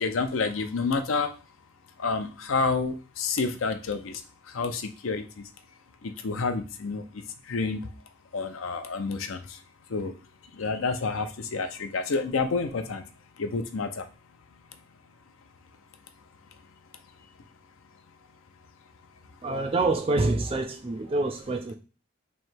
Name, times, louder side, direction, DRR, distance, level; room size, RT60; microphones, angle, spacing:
voice 1, 0.0-1.3 2.0-4.1 4.5-5.2 6.2-7.0 7.5-7.8 8.3-9.4 9.9-10.1 10.6-13.0 13.4-13.9, left 4 dB, 85° left, 0.6 m, -28 dB
voice 2, 19.4-21.7, right 2 dB, 30° right, 0.4 m, -26 dB
3.2 x 2.8 x 4.4 m
head